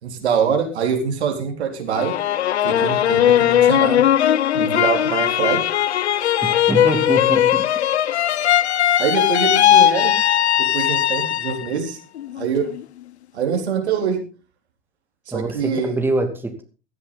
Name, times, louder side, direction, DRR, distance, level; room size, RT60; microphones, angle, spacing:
voice 1, 0.0-2.1 2.6-4.0 4.5-5.6 9.0-10.1 10.6-12.0 12.4-12.7 13.3-14.2 15.3-16.0, right 6 dB, 75° right, 3 dB, 3.9 m, -24 dB
sound 1, 1.9-11.7 12.2-12.8, left 11 dB, 80° left, 0.7 m, -18 dB
voice 2, 6.4-7.7 15.3-16.6, right 2 dB, 5° right, 5 dB, 2.7 m, -24 dB
16.0 x 13.0 x 4.1 m, 0.34 s
figure-of-eight pair, 85°, 33 cm